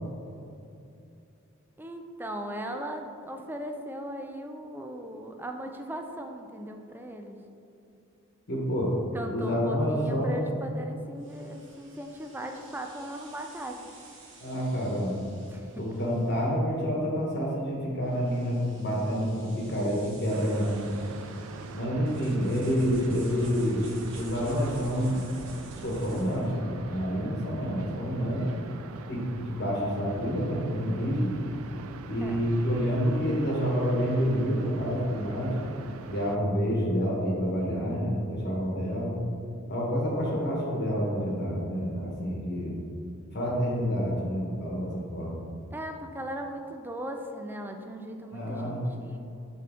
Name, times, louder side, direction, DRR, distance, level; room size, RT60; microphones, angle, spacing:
voice 1, 1.8-7.4 9.1-13.8 15.5-15.9 32.2-32.5 45.7-49.2, equal, 10° right, 4 dB, 0.4 m, -38 dB
voice 2, 8.5-8.9 9.3-10.5 14.4-15.2 15.8-20.8 21.7-25.3 25.8-28.5 29.1-31.4 32.1-35.6 36.1-39.2 39.7-42.8 43.3-45.4 48.3-48.8, equal, 55° left, -3 dB, 1.2 m, -28 dB
sound 1, 11.2-26.6, right 2 dB, 65° right, 1.1 m, -51 dB
sound 2, 20.3-36.4, right 4 dB, 80° right, 0.4 m, -43 dB
7.1 x 4.5 x 3.5 m, 2.7 s
head